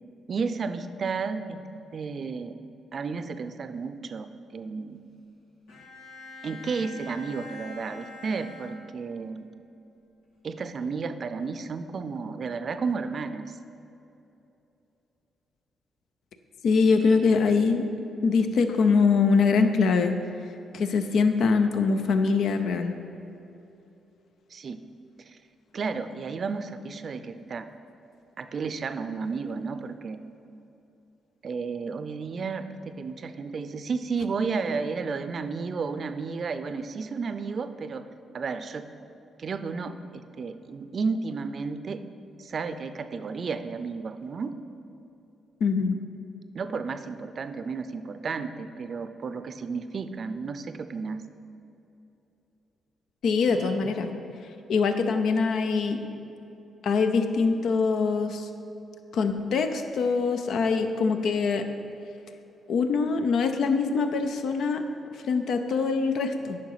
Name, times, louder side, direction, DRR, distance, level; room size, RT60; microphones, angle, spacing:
voice 1, 0.3-1.6 1.9-2.5 2.9-5.0 6.4-9.5 10.4-13.6 16.9-18.0 24.5-24.8 25.3-25.4 25.7-27.7 28.4-30.2 31.4-38.1 38.3-38.9 39.4-42.0 42.4-44.6 45.8-46.0 46.5-51.2 53.4-53.9, right 4 dB, 55° right, 10 dB, 0.5 m, -32 dB
Bowed string instrument, 5.7-9.3, left 2 dB, 90° left, 1.7 m, -45 dB
voice 2, 16.6-17.9 18.2-20.2 20.7-22.9 45.6-46.0 53.2-54.1 54.7-56.0 56.8-58.5 59.1-61.7 62.7-64.8 65.2-66.6, left 4 dB, 70° left, 7 dB, 0.6 m, -23 dB
9.3 x 5.8 x 4.8 m, 2.9 s
supercardioid pair, 60°, 0 cm